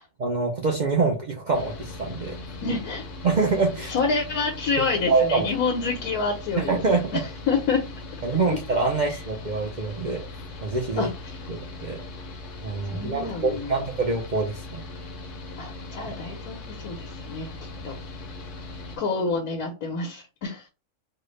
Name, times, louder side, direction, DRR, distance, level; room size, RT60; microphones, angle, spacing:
voice 1, 0.2-2.4 3.2-3.9 5.1-5.5 6.6-7.2 8.2-10.3 10.6-11.1 11.5-12.0 12.6-14.8, right 4 dB, 65° right, 0.4 m, -25 dB
Mechanical fan, 1.5-19.0, left 2 dB, 60° left, 1.1 m, -39 dB
voice 2, 2.6-3.0 3.9-6.8 7.1-7.8 10.9-11.4 12.9-13.7 15.6-17.5 17.8-17.9 19.0-20.7, left 4 dB, 80° left, 1.4 m, -28 dB
4.2 x 2.1 x 3.1 m
omnidirectional pair, 1.6 m